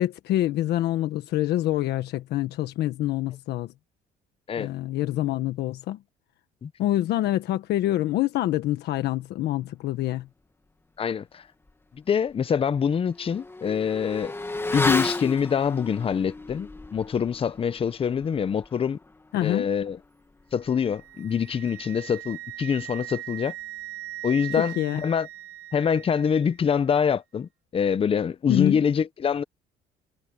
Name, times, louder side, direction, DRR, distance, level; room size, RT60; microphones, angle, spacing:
voice 1, 0.0-3.7 4.6-6.0 6.8-10.3 19.3-19.7 24.8-25.0 28.5-28.8, left 14 dB, 75° left, 1.4 m, -26 dB
voice 2, 11.0-11.4 11.9-14.3 14.7-19.0 19.4-20.0 20.5-23.5 24.2-25.3 25.7-29.4, left 7 dB, 35° left, 0.8 m, -25 dB
Motorcycle / Accelerating revving vroom, 11.7-11.8 12.2-22.2 22.4-22.6, left 2 dB, 15° left, 2.3 m, -35 dB
Wind instrument woodwind instrument, 20.6-26.6, right 14 dB, 80° right, 2.5 m, -40 dB
cardioid pair, 110°, 17 cm